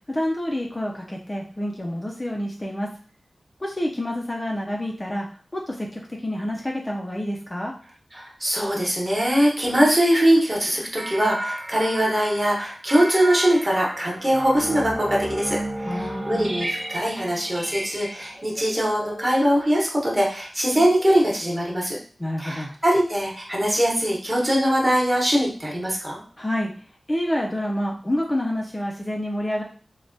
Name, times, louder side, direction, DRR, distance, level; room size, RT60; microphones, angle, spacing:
voice 1, 0.1-2.9 3.6-5.3 5.5-7.7 15.8-16.5 22.2-22.7 26.4-26.7 27.1-29.6, left 1 dB, 20° left, -1 dB, 0.3 m, -28 dB
voice 2, 8.1-15.6 16.0-22.0 22.4-26.2, equal, 20° right, -2 dB, 0.9 m, -22 dB
sound 1, 11.0-19.9, right 1 dB, 45° right, 0.7 m, -33 dB
3.2 x 2.1 x 2.5 m, 0.42 s
wide cardioid pair, 95°, 0 cm